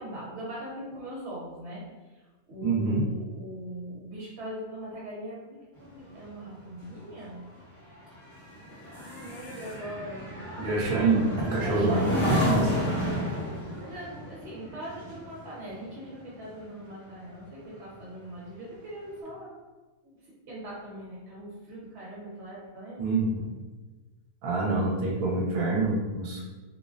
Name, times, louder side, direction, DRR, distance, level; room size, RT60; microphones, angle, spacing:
voice 1, 0.0-7.4 9.0-10.3 11.5-12.8 13.8-19.6 20.0-23.2, right 1 dB, 55° right, -6 dB, 1.1 m, -41 dB
voice 2, 2.6-3.0 10.6-12.0 12.3-12.7 23.0-23.4 24.4-26.4, right 3 dB, 80° right, -3 dB, 1.0 m, -26 dB
sound 1, 5.8-17.5 17.9-18.2, equal, 25° left, 0.8 m, -33 dB
2.5 x 2.1 x 2.4 m, 1.2 s
omnidirectional pair, 1.4 m